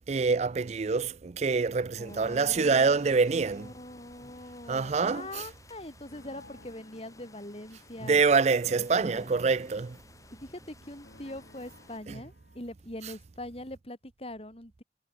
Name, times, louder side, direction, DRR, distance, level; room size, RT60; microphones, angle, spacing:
voice 1, 0.0-3.7 4.7-5.4 8.0-10.0 12.1-12.2, right 4 dB, 40° right, 0.4 m, -26 dB
voice 2, 2.0-8.2 9.0-9.3 10.3-14.8, left 1 dB, 35° left, 4.2 m, -43 dB
sound 1, 2.1-12.0, left 2 dB, 20° left, 4.9 m, -55 dB
sound 2, 5.5-8.3 8.7-12.7, left 2 dB, 70° left, 6.5 m, -57 dB
head